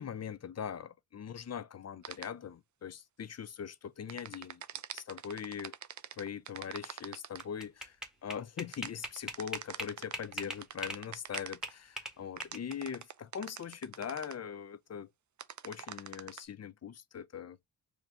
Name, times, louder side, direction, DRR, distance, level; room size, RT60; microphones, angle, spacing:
voice 1, 0.0-4.6 4.9-5.7 6.2-8.0 8.2-15.1 15.6-17.6, left 8 dB, 40° left, 0.5 m, -41 dB
sound 1, 2.0-2.3 4.1-7.4 8.7-11.7 12.4-14.3 15.4-16.4, right 9 dB, 45° right, 0.5 m, -44 dB
sound 2, 7.1-11.0 11.3-12.9, equal, ahead, 1.8 m, -40 dB
5.0 x 2.9 x 3.6 m
cardioid pair, 80°, 40 cm